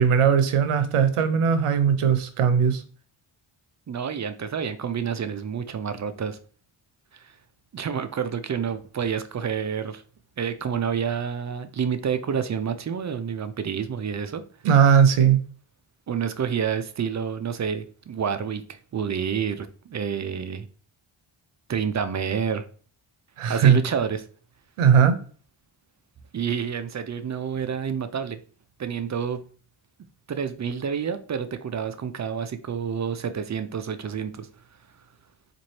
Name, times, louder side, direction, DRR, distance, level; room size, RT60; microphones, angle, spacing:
voice 1, 0.0-2.8 14.6-15.4 23.4-23.8 24.8-25.1, right 7 dB, 85° right, 0.7 m, -18 dB
voice 2, 3.9-6.4 7.1-7.3 7.7-10.0 10.4-14.4 16.1-20.7 21.7-22.6 23.5-24.3 26.3-28.4 28.8-29.4 30.3-34.5, right 7 dB, 35° right, 0.4 m, -29 dB
4.1 x 2.5 x 3.1 m
cardioid pair, 75°, 50 cm